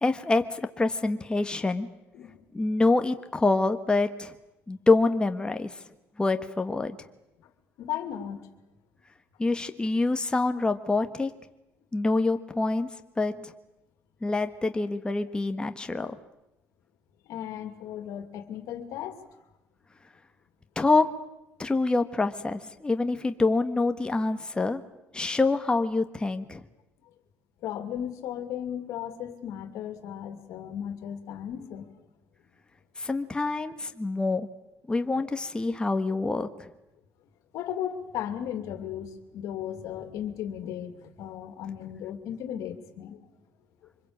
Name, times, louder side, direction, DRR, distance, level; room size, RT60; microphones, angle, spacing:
voice 1, 0.0-1.9 2.5-4.3 4.7-5.8 6.2-7.0 9.4-11.3 11.9-12.9 13.2-13.5 14.2-16.2 20.7-21.1 21.6-24.8 25.1-26.6 33.0-34.5 34.9-36.7, left 3 dB, 15° left, 7 dB, 1.5 m, -26 dB
voice 2, 2.1-2.5 7.4-7.5 7.8-8.5 17.3-19.2 27.6-31.9 35.1-35.2 37.5-43.2, left 10 dB, 80° left, 8 dB, 2.5 m, -36 dB
25.5 x 21.5 x 8.7 m, 0.92 s
cardioid pair, 90°, 5 cm